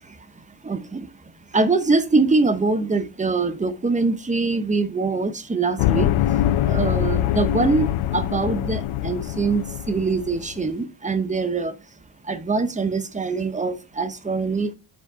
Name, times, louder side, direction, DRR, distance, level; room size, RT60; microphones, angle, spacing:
voice 1, 0.7-1.1 1.5-6.1 6.7-7.9 8.1-11.7 12.3-14.7, right 3 dB, 15° right, 0.7 m, -23 dB
sound 1, 5.8-10.6, left 12 dB, 85° left, 0.6 m, -23 dB
7.3 x 3.5 x 5.4 m
wide cardioid pair, 145°, 47 cm